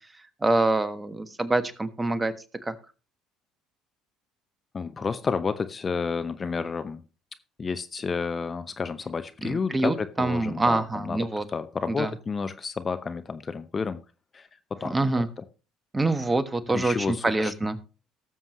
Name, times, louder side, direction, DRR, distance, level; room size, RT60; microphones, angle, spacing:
voice 1, 0.4-2.3 2.6-2.7 9.4-11.4 11.9-12.1 14.8-15.3 15.9-17.8, right 2 dB, 20° right, 13 dB, 1.3 m, -25 dB
voice 2, 4.7-7.0 7.6-14.0 14.3-15.4 16.7-17.5, left 5 dB, 30° left, 11 dB, 0.8 m, -31 dB
18.5 x 7.4 x 3.1 m, 0.33 s
hypercardioid pair, 60°, 0 cm